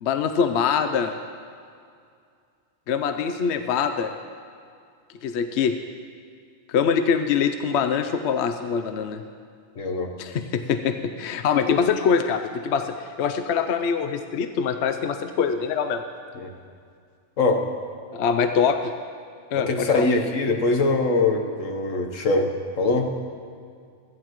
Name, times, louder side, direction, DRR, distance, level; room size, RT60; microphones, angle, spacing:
voice 1, 0.0-1.1 2.9-4.1 5.2-5.7 6.7-9.2 10.2-16.0 18.1-18.9 19.5-20.1, left 6 dB, 65° left, 8 dB, 0.9 m, -24 dB
voice 2, 9.8-10.1 16.3-16.5 17.4-17.7 19.5-23.1, left 3 dB, 80° left, 4 dB, 1.5 m, -23 dB
17.0 x 13.5 x 3.1 m, 2.2 s
omnidirectional pair, 1.3 m